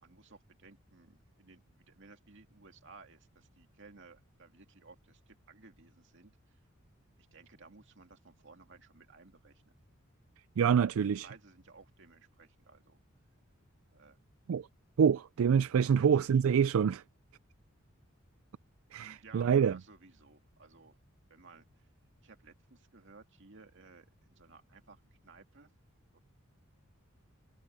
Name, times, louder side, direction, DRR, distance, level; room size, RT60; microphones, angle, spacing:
voice 1, 0.0-6.6 7.2-9.8 10.7-13.0 13.9-14.2 15.7-16.3 19.0-21.0 21.3-21.9 22.2-25.7 26.1-26.2, right 4 dB, 60° right, 2.4 m, -58 dB
voice 2, 10.6-11.3 14.5-14.7 15.0-17.0 18.9-19.8, right 7 dB, 75° right, 0.4 m, -26 dB
head